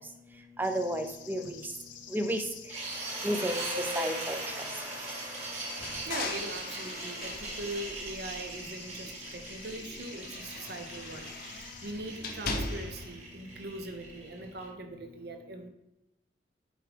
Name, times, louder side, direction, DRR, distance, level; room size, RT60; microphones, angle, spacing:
sound 1, 0.6-11.9, left 7 dB, 85° left, 0.8 m, -50 dB
voice 1, 0.6-1.6 2.1-2.4 3.2-3.6 4.0-4.4, right 1 dB, 10° right, 6 dB, 0.6 m, -31 dB
sound 2, 2.7-14.6, right 2 dB, 40° right, 2.0 m, -39 dB
sound 3, 5.7-8.8 9.2-13.2, left 3 dB, 55° left, 0.8 m, -40 dB
voice 2, 6.1-15.7, right 2 dB, 60° right, 6 dB, 0.9 m, -41 dB
7.8 x 4.8 x 3.4 m, 0.92 s
head